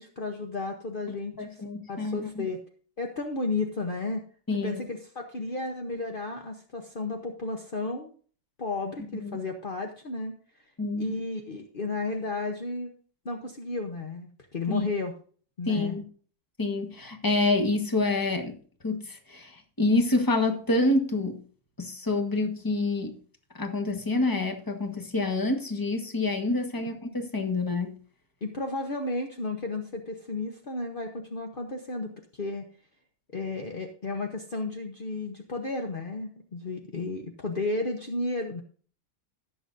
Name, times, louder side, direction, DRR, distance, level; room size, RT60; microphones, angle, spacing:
voice 1, 0.0-1.5 1.9-2.6 3.0-4.2 4.6-8.2 8.6-10.3 11.0-12.9 13.2-15.1 15.6-16.0 26.8-26.9 28.4-32.1 32.4-32.7 33.3-38.6, left 3 dB, 55° left, 3 dB, 0.5 m, -33 dB
voice 2, 1.4-2.5 4.5-4.8 9.2-9.4 10.8-11.2 14.7-14.9 15.7-16.0 16.6-18.6 18.8-21.4 21.8-23.2 23.5-27.9, left 2 dB, 15° left, 5 dB, 1.0 m, -27 dB
19.0 x 7.0 x 2.6 m, 0.43 s
omnidirectional pair, 2.4 m